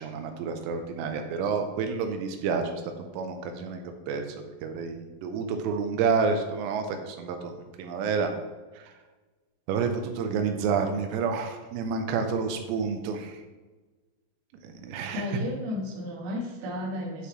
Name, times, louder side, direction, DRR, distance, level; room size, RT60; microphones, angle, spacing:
voice 1, 0.0-2.7 3.0-4.2 4.6-8.3 8.8-8.9 9.7-13.4 14.6-15.2, right 5 dB, 85° right, 5 dB, 2.9 m, -29 dB
voice 2, 15.1-17.3, left 1 dB, 65° right, -2 dB, 3.1 m, -33 dB
9.3 x 6.8 x 3.1 m, 1.2 s
omnidirectional pair, 5.0 m